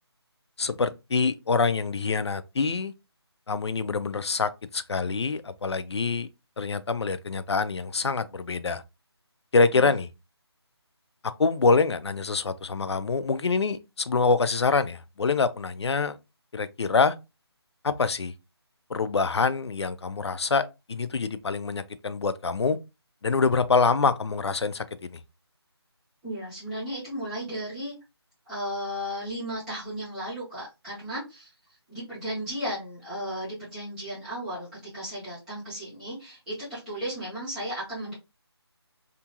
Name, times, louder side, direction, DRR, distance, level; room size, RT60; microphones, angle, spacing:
voice 1, 0.6-2.9 3.5-6.3 6.6-8.8 9.5-10.1 11.4-16.2 16.5-17.1 17.8-18.3 18.9-22.8 23.2-25.2, left 4 dB, 75° left, 0.5 m, -25 dB
voice 2, 26.2-27.9 28.5-31.5 31.9-38.1, equal, ahead, 0.5 m, -35 dB
2.8 x 2.3 x 2.8 m
figure-of-eight pair, 175°, 14 cm